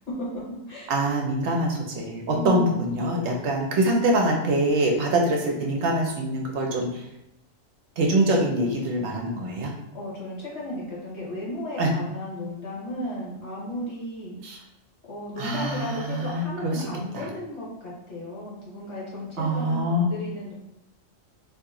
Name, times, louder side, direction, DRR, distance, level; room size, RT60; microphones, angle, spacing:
voice 1, 0.9-7.0 8.0-9.7 11.8-11.9 14.4-14.6 15.4-16.9 17.1-17.3 19.4-20.1, right 1 dB, 65° right, 1 dB, 0.8 m, -24 dB
voice 2, 2.3-2.9 9.9-14.4 15.1-20.5, left 1 dB, 60° left, -6 dB, 1.4 m, -34 dB
2.8 x 2.7 x 3.6 m, 0.87 s
omnidirectional pair, 1.3 m